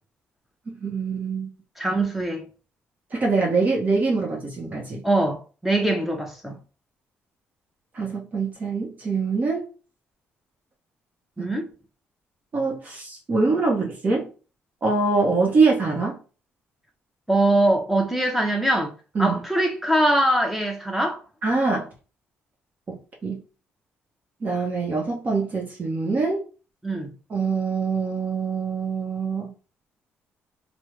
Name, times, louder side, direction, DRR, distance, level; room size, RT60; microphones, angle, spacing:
voice 1, 0.7-1.5 3.1-5.0 7.9-9.6 11.4-11.5 12.5-14.3 14.8-16.2 19.1-19.4 21.4-21.9 22.9-23.4 24.4-26.4 27.3-29.5, right 4 dB, 40° right, 0.8 m, -24 dB
voice 2, 1.8-2.5 5.0-6.6 11.4-11.7 17.3-18.9 19.2-21.2 26.8-27.1, right 1 dB, 5° right, 0.7 m, -22 dB
3.3 x 2.0 x 3.1 m
cardioid pair, 95°, 4 cm